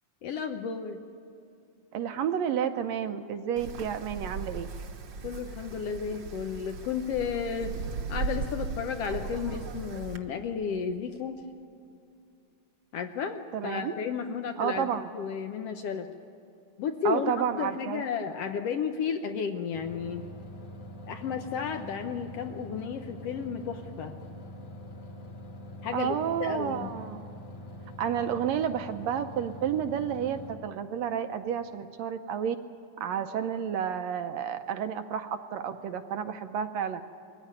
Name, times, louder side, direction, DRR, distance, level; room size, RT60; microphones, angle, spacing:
voice 1, 0.2-1.0 5.2-7.8 8.1-11.4 12.9-16.1 16.8-20.2 21.1-24.2 25.8-26.9, left 6 dB, 70° left, 6 dB, 1.6 m, -33 dB
voice 2, 1.9-4.7 13.5-13.9 14.6-15.1 17.1-18.1 25.9-27.2 28.0-32.6 33.0-37.0, right 8 dB, 75° right, 8 dB, 1.8 m, -31 dB
Wind, 3.6-10.2, right 4 dB, 55° right, 1.4 m, -37 dB
sound 1, 19.7-30.6, left 1 dB, 90° left, 3.9 m, -44 dB
22.0 x 15.5 x 9.6 m, 2.5 s
omnidirectional pair, 3.4 m